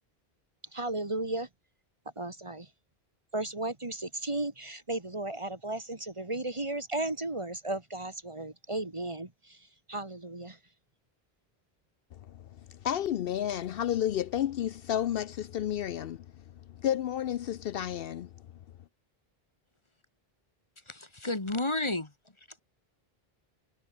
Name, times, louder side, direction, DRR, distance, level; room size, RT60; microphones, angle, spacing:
voice 1, 0.7-1.5 2.2-2.7 3.3-9.6 9.9-10.6, right 2 dB, 30° right, 1.8 m, -35 dB
voice 2, 12.1-16.3 16.7-18.3, left 10 dB, 70° left, 0.8 m, -31 dB
voice 3, 20.9-22.1, left 2 dB, 30° left, 1.7 m, -31 dB
omnidirectional pair, 1.0 m